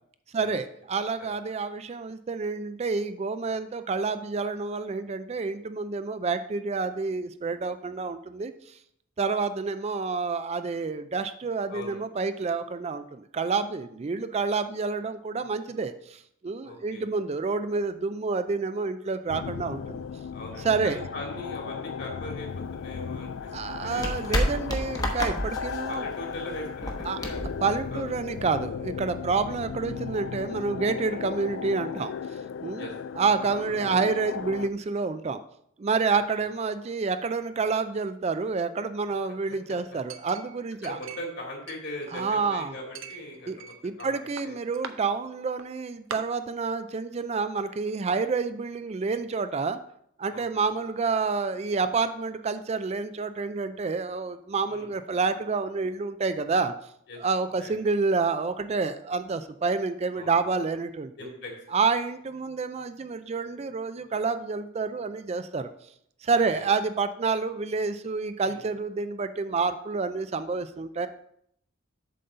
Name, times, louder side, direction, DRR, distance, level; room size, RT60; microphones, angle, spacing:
voice 1, 0.3-8.5 9.2-20.0 20.6-21.0 23.5-26.1 27.1-27.2 27.6-32.1 32.6-32.9 33.2-35.4 35.8-41.0 42.1-42.7 43.5-49.8 50.2-56.7 57.2-61.1 61.7-65.7 66.2-71.1, right 4 dB, 30° right, 11 dB, 0.4 m, -28 dB
voice 2, 1.0-1.3 11.7-12.0 16.6-17.1 20.3-24.5 25.9-27.5 27.9-28.0 31.1-31.2 32.8-32.9 36.1-36.2 40.8-44.5 50.3-50.6 54.7-54.9 57.1-57.2 57.6-57.7 60.1-60.3 61.2-61.7 66.3-66.6 68.4-68.6, left 1 dB, 60° left, 0 dB, 2.3 m, -40 dB
sound 1, 19.3-34.7, left 7 dB, 75° left, 0.3 m, -36 dB
sound 2, 22.5-28.5, equal, 20° left, 1.0 m, -32 dB
Chink clink, 40.1-41.4 41.7-42.5 43.0-44.1 44.4-44.9 45.6-45.7 46.1-46.2, right 6 dB, 80° right, 0.7 m, -41 dB
7.4 x 4.0 x 6.7 m, 0.70 s
head